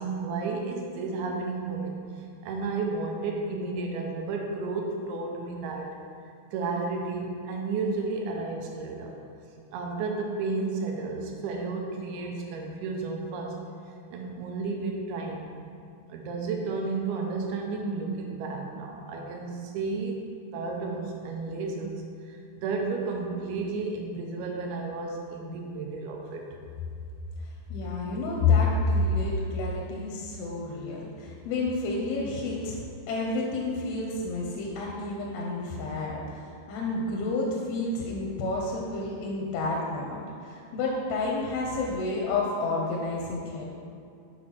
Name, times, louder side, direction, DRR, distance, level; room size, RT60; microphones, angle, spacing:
voice 1, 0.0-2.0 2.4-5.9 6.5-9.2 9.7-13.6 14.1-15.5 16.1-20.2 20.5-26.5, right 3 dB, 85° right, 1 dB, 2.8 m, -32 dB
voice 2, 27.4-32.8 33.1-43.7, left 3 dB, 90° left, -2 dB, 2.7 m, -29 dB
7.3 x 4.4 x 5.8 m, 2.4 s
omnidirectional pair, 4.4 m